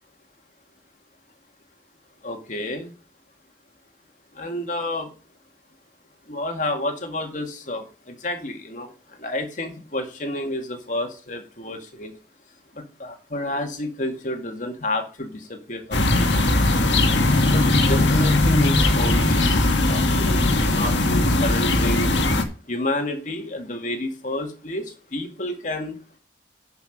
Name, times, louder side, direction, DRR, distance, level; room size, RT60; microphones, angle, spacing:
voice 1, 2.2-2.9 4.4-5.1 6.3-8.9 9.2-12.1 13.0-16.3 17.5-22.1 22.7-24.9 25.1-25.9, left 1 dB, 45° left, 4 dB, 2.0 m, -30 dB
sound 1, 15.9-22.4, left 2 dB, 80° left, 1.7 m, -19 dB
10.5 x 5.9 x 5.2 m, 0.36 s
head